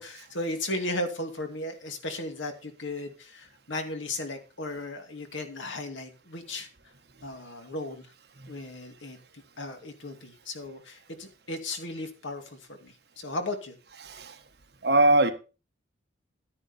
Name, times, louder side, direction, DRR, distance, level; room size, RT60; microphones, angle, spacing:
voice 1, 0.0-6.7 7.2-8.1 8.5-9.2 9.6-13.8, left 2 dB, 85° left, 2.4 m, -36 dB
voice 2, 14.0-14.4 14.8-15.3, right 2 dB, 55° right, 1.5 m, -22 dB
12.0 x 10.0 x 4.3 m
head